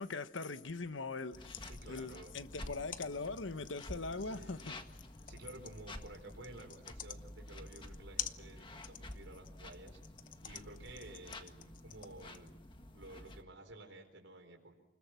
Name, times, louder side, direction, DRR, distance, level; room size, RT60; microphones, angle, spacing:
voice 1, 0.0-1.6 1.9-4.7, left 3 dB, 85° left, 1.1 m, -41 dB
sound 1, 1.2-12.5, left 10 dB, 45° left, 0.9 m, -48 dB
sound 2, 1.3-13.4, left 1 dB, 25° left, 1.7 m, -51 dB
voice 2, 1.6-2.3 4.2-4.8 5.3-10.0 10.4-12.5 12.9-14.7, right 2 dB, 85° right, 4.5 m, -53 dB
29.5 x 21.0 x 6.2 m
head